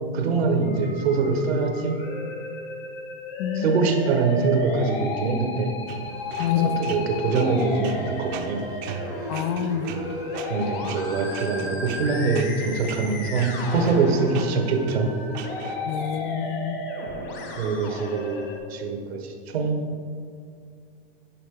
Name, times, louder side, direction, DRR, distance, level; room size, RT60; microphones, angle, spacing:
voice 1, 0.1-2.0 3.5-5.7 6.6-8.6 10.5-15.1 17.6-19.8, right 4 dB, 80° right, 4 dB, 1.4 m, -24 dB
Musical instrument, 0.6-18.6, left 2 dB, 60° left, 1.9 m, -33 dB
voice 2, 3.4-3.8 6.4-6.7 9.3-9.9 15.9-16.8, left 11 dB, 35° left, 13 dB, 0.4 m, -27 dB
sound 1, 5.9-15.8, right 7 dB, 50° right, 0.7 m, -39 dB
10.5 x 5.4 x 3.8 m, 2.2 s
hypercardioid pair, 140°, 31 cm